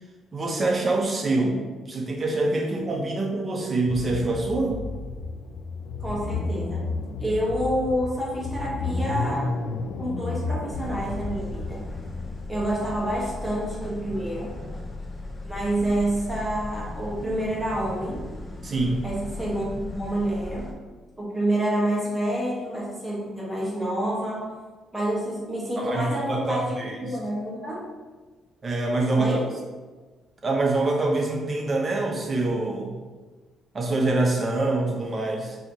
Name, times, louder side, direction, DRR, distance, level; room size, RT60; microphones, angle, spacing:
voice 1, 0.3-4.8 18.6-19.0 25.8-27.0 28.6-29.4 30.4-32.9 33.7-35.6, right 2 dB, 35° right, 0 dB, 0.8 m, -25 dB
sound 1, 3.9-13.3, left 3 dB, 70° left, 0.3 m, -32 dB
voice 2, 6.0-6.8 7.2-9.6 10.0-11.8 12.5-14.5 15.4-18.2 19.0-20.7 21.2-24.5 24.9-27.8 29.2-29.4, right 1 dB, 5° right, -5 dB, 1.2 m, -28 dB
sound 2, 10.7-20.7, left 2 dB, 25° left, 0.7 m, -37 dB
4.0 x 2.9 x 2.8 m, 1.3 s
cardioid pair, 90°, 0 cm